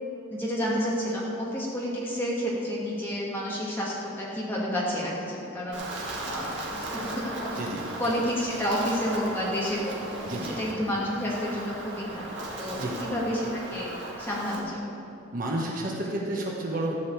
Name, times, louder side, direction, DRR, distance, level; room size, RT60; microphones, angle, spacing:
voice 1, 0.3-5.8 6.2-7.6 8.0-10.0 10.4-12.3 12.6-13.9 14.2-14.8, equal, 10° left, -6 dB, 2.5 m, -30 dB
Wind, 5.7-14.6, right 2 dB, 55° right, 2.1 m, -37 dB
voice 2, 7.5-7.8 10.2-10.6 12.8-12.9 15.3-16.9, right 1 dB, 40° right, -2 dB, 1.3 m, -31 dB
14.0 x 5.3 x 8.4 m, 2.9 s
head